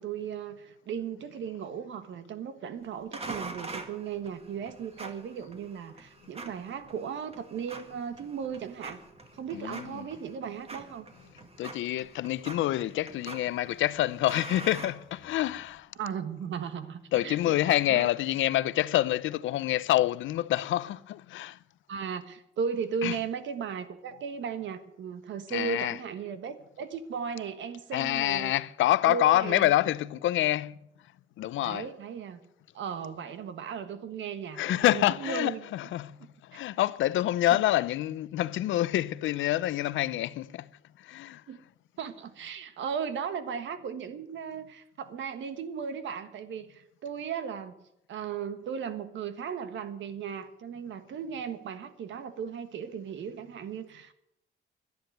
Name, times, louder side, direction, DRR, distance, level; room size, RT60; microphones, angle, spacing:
voice 1, 0.0-9.0 9.4-11.1 16.0-18.1 21.9-28.5 29.1-29.7 31.6-32.4 32.7-35.7 36.5-36.6 37.5-37.6 41.5-41.6 42.0-47.8 48.1-54.1, right 7 dB, 70° right, 1.5 m, -36 dB
sound 1, 3.1-15.6, right 3 dB, 30° right, 2.0 m, -45 dB
voice 2, 9.5-10.1 11.6-15.9 17.1-21.6 23.0-23.2 25.5-26.0 27.9-30.8 31.4-31.9 34.6-36.2 36.5-40.7 41.0-41.4, left 14 dB, 75° left, 0.6 m, -27 dB
12.0 x 10.5 x 9.2 m
cardioid pair, 90°, 20 cm